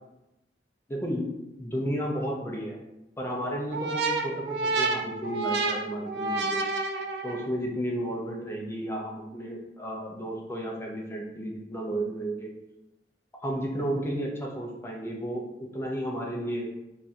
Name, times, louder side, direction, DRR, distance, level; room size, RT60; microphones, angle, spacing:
voice 1, 0.9-1.3 1.6-2.8 3.2-6.7 7.2-12.5 13.4-16.7, equal, 15° left, -1 dB, 0.5 m, -33 dB
sound 1, 3.7-7.6, right 3 dB, 65° right, 0.4 m, -29 dB
2.7 x 2.4 x 4.1 m, 0.93 s
head